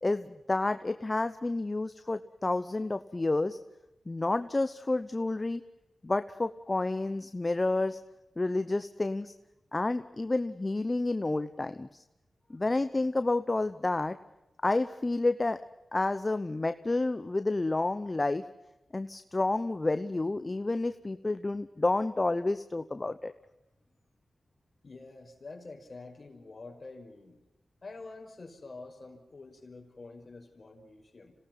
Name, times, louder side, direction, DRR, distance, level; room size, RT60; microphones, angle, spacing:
voice 1, 0.0-3.6 4.1-5.6 6.0-8.0 8.4-9.3 9.7-12.0 12.5-14.2 14.6-15.6 15.9-18.4 18.9-23.3, left 2 dB, 30° left, 11 dB, 0.9 m, -30 dB
voice 2, 24.8-27.4 27.8-31.3, left 3 dB, 50° left, 3 dB, 5.3 m, -47 dB
26.5 x 18.0 x 6.0 m, 0.97 s
cardioid pair, 55°, 0 cm